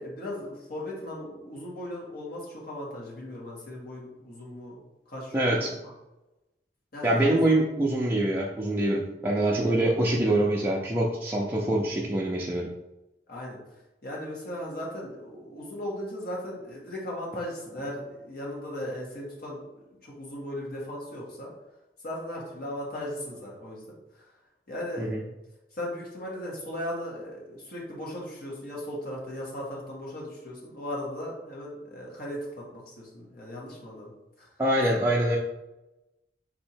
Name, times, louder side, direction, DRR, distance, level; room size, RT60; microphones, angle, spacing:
voice 1, 0.0-4.8 5.1-5.9 6.9-7.5 13.3-13.6 14.0-19.6 20.0-21.5 22.0-24.4 24.7-25.1 25.7-34.5, left 1 dB, 60° left, -4 dB, 1.5 m, -37 dB
voice 2, 5.3-5.7 7.0-12.7 25.0-25.2 34.6-35.4, right 1 dB, 10° right, -4 dB, 0.5 m, -25 dB
4.3 x 2.8 x 4.4 m, 0.97 s
head